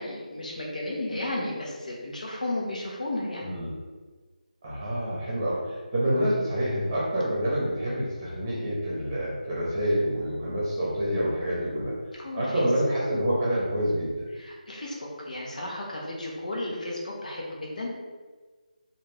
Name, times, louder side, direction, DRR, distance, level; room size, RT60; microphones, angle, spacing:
voice 1, 0.0-3.5 12.2-12.7 14.3-17.9, left 1 dB, 60° left, -2 dB, 1.0 m, -33 dB
voice 2, 3.4-3.7 4.6-11.9 12.3-14.3, equal, 25° right, -6 dB, 0.9 m, -27 dB
3.3 x 2.7 x 3.3 m, 1.4 s
figure-of-eight pair, 165°, 5 cm